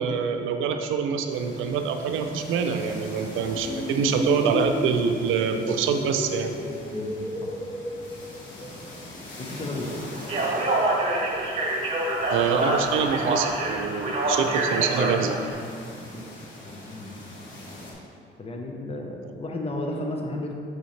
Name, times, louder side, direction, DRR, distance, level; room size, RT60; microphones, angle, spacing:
voice 1, 0.0-6.6 12.3-15.4, right 6 dB, 90° right, 6 dB, 0.5 m, -25 dB
sound 1, 1.3-17.9, left 1 dB, 85° left, 1.6 m, -43 dB
sound 2, 3.6-8.9, left 1 dB, 10° left, 0.6 m, -32 dB
voice 2, 6.9-7.5 9.4-9.9 16.1-16.2 16.6-17.2 18.4-20.6, left 1 dB, 30° left, 1 dB, 0.9 m, -33 dB
Speech, 10.2-15.5, right 2 dB, 40° right, 1.7 m, -26 dB
6.9 x 6.5 x 3.2 m, 2.3 s
cardioid pair, 90°, 20 cm